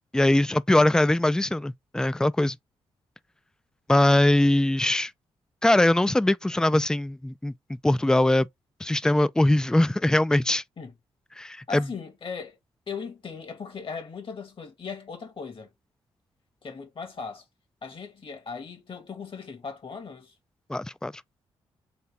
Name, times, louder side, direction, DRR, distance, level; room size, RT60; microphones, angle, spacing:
voice 1, 0.1-2.6 3.9-5.1 5.6-7.5 7.8-8.5 8.8-10.6 11.4-11.8 20.7-21.1, left 1 dB, 5° left, 0.3 m, -21 dB
voice 2, 11.7-12.6 12.9-15.7 16.6-17.5 17.8-20.3, left 5 dB, 50° left, 2.1 m, -38 dB
4.1 x 3.5 x 3.7 m
cardioid pair, 60°, 11 cm